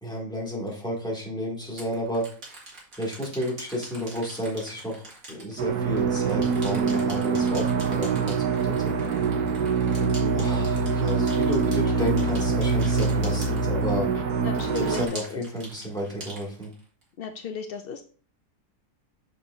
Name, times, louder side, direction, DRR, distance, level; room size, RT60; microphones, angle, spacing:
voice 1, 0.0-2.3 3.0-8.9 10.3-14.1 14.8-16.7, equal, 5° left, -4 dB, 2.2 m, -31 dB
sound 1, 0.7-0.8 1.6-6.0 6.3-14.1 14.5-17.0, right 2 dB, 60° right, 2.6 m, -43 dB
sound 2, 5.6-15.1, right 5 dB, 85° right, 1.5 m, -24 dB
voice 2, 10.0-10.5 11.4-11.5 11.8-12.1 14.4-15.4 17.2-18.0, left 6 dB, 80° left, 7 dB, 0.5 m, -35 dB
6.9 x 6.6 x 2.6 m, 0.41 s
omnidirectional pair, 1.6 m